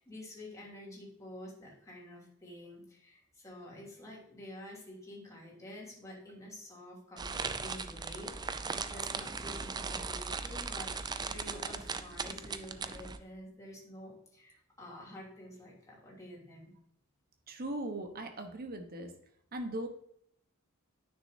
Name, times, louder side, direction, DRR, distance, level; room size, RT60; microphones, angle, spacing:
voice 1, 0.0-16.7, left 1 dB, 15° left, -5 dB, 2.9 m, -49 dB
sound 1, 7.2-13.2, right 4 dB, 20° right, 0.4 m, -38 dB
voice 2, 17.5-19.1 19.5-19.9, right 1 dB, 45° right, 5 dB, 1.1 m, -39 dB
10.0 x 6.3 x 2.7 m, 0.72 s
head